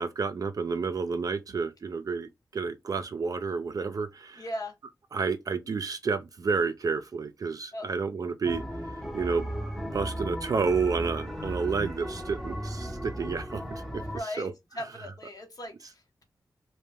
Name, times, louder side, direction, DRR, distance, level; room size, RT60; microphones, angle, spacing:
voice 1, 0.0-4.4 5.1-8.6 8.9-9.5 9.9-14.0 14.4-14.5, right 5 dB, 55° right, 0.3 m, -30 dB
voice 2, 4.4-4.7 7.7-7.9 13.9-14.5 14.7-16.2, left 1 dB, 55° left, 0.8 m, -38 dB
sound 1, 8.4-14.2, equal, ahead, 0.6 m, -35 dB
2.2 x 2.1 x 3.3 m
cardioid pair, 60°, 7 cm